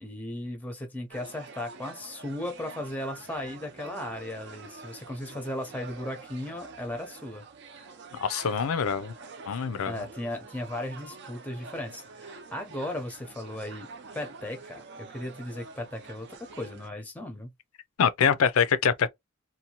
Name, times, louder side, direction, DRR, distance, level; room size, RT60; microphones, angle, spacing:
voice 1, 0.0-7.4 7.7-7.9 9.8-13.9 14.1-16.3 16.5-17.5, left 1 dB, 5° left, 0.6 m, -36 dB
sound 1, 1.1-16.9, right 4 dB, 55° right, 0.5 m, -47 dB
voice 2, 8.1-9.1 9.5-9.9 18.0-19.1, left 6 dB, 90° left, 0.4 m, -24 dB
2.7 x 2.2 x 2.8 m
head